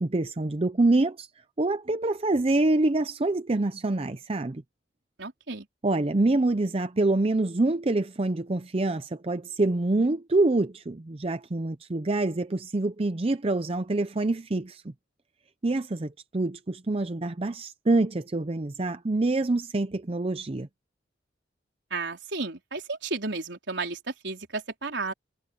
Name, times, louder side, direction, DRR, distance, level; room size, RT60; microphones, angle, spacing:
voice 1, 0.0-1.3 1.6-4.6 5.8-14.9 15.6-20.7, right 2 dB, 30° right, 0.6 m, -26 dB
voice 2, 5.2-5.7 21.9-25.1, right 3 dB, 70° right, 4.4 m, -33 dB
head